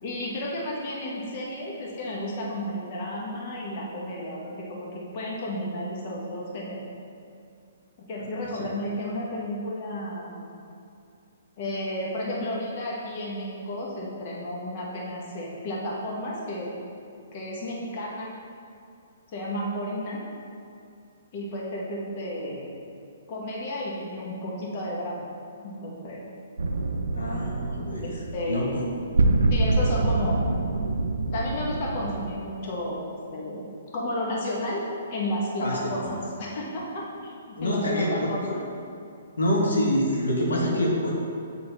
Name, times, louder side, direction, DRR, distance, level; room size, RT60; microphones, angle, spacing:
voice 1, 0.0-6.9 8.1-10.6 11.6-16.7 17.3-18.3 19.3-20.2 21.3-22.7 23.3-25.3 25.6-26.2 28.0-28.7 29.5-30.5 31.3-33.7 33.9-34.8 35.1-38.6, left 1 dB, 45° left, -4 dB, 1.1 m, -32 dB
sound 1, 26.6-32.3, right 2 dB, 90° right, 0.4 m, -26 dB
voice 2, 27.1-28.1 28.5-28.8 35.6-35.9 37.6-38.5 39.4-41.1, left 1 dB, 90° left, -3 dB, 1.3 m, -26 dB
7.1 x 3.8 x 4.0 m, 2.4 s
hypercardioid pair, 145°, 0 cm